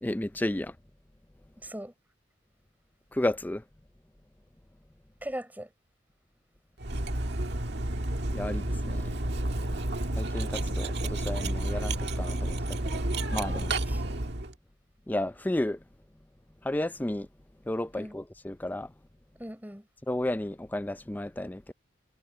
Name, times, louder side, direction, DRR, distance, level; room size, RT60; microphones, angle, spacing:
voice 1, 0.0-0.7 3.1-3.6 8.3-9.2 10.2-12.8 13.3-13.8 15.1-15.8 16.6-17.3 17.7-18.9 20.1-21.7, left 1 dB, 10° left, 0.5 m, -32 dB
voice 2, 1.6-1.9 5.2-5.7 13.5-14.0 17.9-18.1 19.4-19.9, right 1 dB, 10° right, 6.5 m, -40 dB
Cutlery silverware, 6.8-14.5, right 1 dB, 65° right, 1.8 m, -30 dB
head